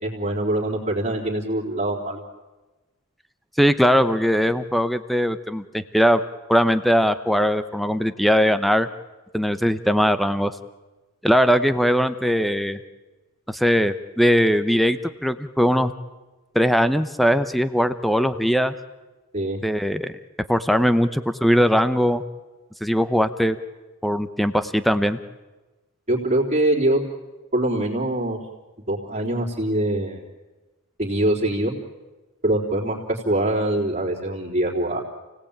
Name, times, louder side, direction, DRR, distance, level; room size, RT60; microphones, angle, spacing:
voice 1, 0.0-2.3 19.3-19.6 26.1-27.1 27.5-28.4 28.9-30.2 31.0-31.7 32.4-35.0, right 1 dB, 35° right, -4 dB, 3.6 m, -23 dB
voice 2, 3.6-6.2 6.5-8.9 9.3-10.5 11.2-12.8 13.5-15.9 16.5-18.7 19.6-20.1 20.5-22.2 22.8-23.6 24.0-25.2, equal, ahead, 12 dB, 0.9 m, -20 dB
28.5 x 18.0 x 8.7 m, 1.2 s
head